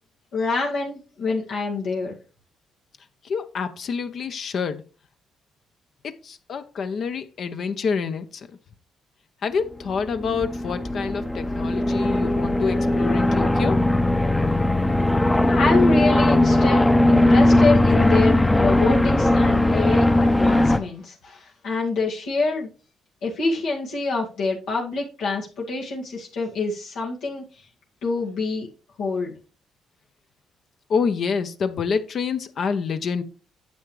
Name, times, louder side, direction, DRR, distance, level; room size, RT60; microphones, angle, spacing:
voice 1, 0.3-2.1 15.5-22.7 23.2-27.4 28.0-28.7 29.0-29.3, left 3 dB, 90° left, 2.1 m, -26 dB
voice 2, 3.2-4.8 6.0-8.6 9.4-13.9 30.9-33.2, left 5 dB, 60° left, 0.7 m, -27 dB
sound 1, 9.8-20.8, left 1 dB, 15° left, 0.6 m, -19 dB
9.4 x 7.0 x 3.2 m
cardioid pair, 90°, 0 cm